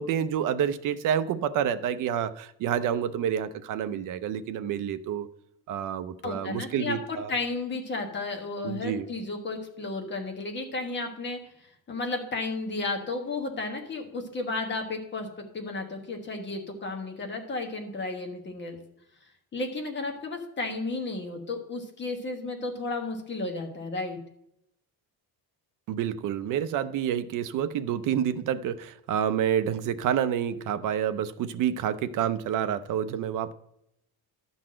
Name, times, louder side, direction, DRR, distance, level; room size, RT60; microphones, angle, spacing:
voice 1, 0.0-5.3 5.7-7.3 8.6-9.1 25.9-33.5, right 9 dB, 55° right, 0.6 m, -28 dB
voice 2, 6.2-15.3 15.5-18.8 19.5-24.2, left 3 dB, 30° left, 1.3 m, -33 dB
12.0 x 4.1 x 7.5 m
cardioid pair, 170°, 38 cm